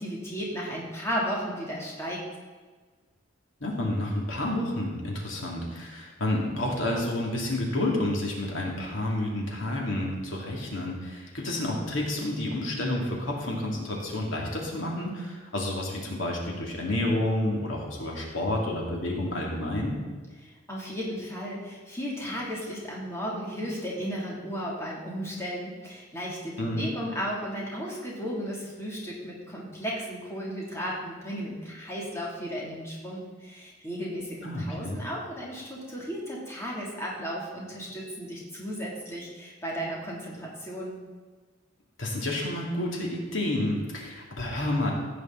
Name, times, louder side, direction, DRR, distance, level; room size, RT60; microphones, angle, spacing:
voice 1, 0.0-2.2 20.7-41.0, equal, 15° left, -5 dB, 2.8 m, -34 dB
voice 2, 3.6-20.0 26.6-26.9 34.4-35.0 42.0-44.9, left 1 dB, 85° left, -2 dB, 2.6 m, -30 dB
16.0 x 8.7 x 4.0 m, 1.4 s
head